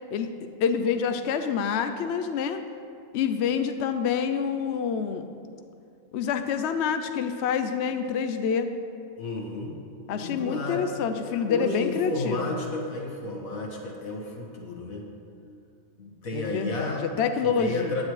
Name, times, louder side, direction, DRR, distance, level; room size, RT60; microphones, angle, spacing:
voice 1, 0.6-2.6 3.1-5.3 6.1-8.7 10.1-12.6 16.3-18.0, left 6 dB, 65° left, 8 dB, 0.8 m, -27 dB
voice 2, 9.2-9.8 10.2-10.8 11.2-15.1 16.0-17.1 17.4-18.0, left 2 dB, 85° left, -1 dB, 2.0 m, -32 dB
15.5 x 9.5 x 3.2 m, 2.4 s
omnidirectional pair, 1.4 m